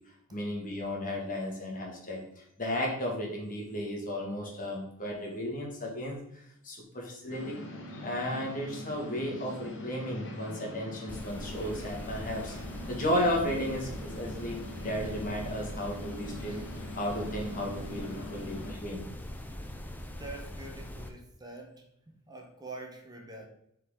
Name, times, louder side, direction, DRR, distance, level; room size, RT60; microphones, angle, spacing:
voice 1, 0.3-6.2 6.6-7.6 7.9-19.1, equal, 40° left, -1 dB, 2.1 m, -34 dB
sound 1, 7.3-18.7, left 1 dB, 55° left, 1.5 m, -43 dB
sound 2, 11.1-21.1, left 1 dB, 10° left, 0.7 m, -42 dB
voice 2, 20.1-23.5, right 2 dB, 20° right, 2 dB, 1.1 m, -46 dB
7.9 x 4.6 x 3.8 m, 0.76 s
head